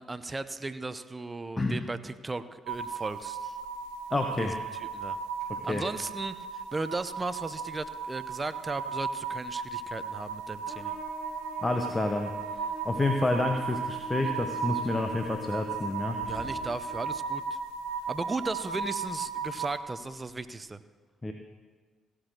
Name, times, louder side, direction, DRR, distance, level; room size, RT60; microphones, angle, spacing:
voice 1, 0.0-3.6 4.4-4.5 4.8-5.2 5.6-10.9 16.2-17.6 18.1-20.8, right 3 dB, 25° right, 12 dB, 0.8 m, -36 dB
sound 1, 2.7-19.8, right 6 dB, 80° right, 0.7 m, -36 dB
voice 2, 4.1-4.6 5.5-5.8 11.6-16.2 21.2-21.3, left 2 dB, 20° left, 5 dB, 1.0 m, -29 dB
Trumpet, 10.6-17.2, equal, 10° right, 3.7 m, -45 dB
sound 2, 16.2-18.7 19.0-20.6, left 2 dB, 60° left, 4.2 m, -51 dB
16.5 x 6.3 x 6.6 m, 1.5 s
hypercardioid pair, 45°, 0 cm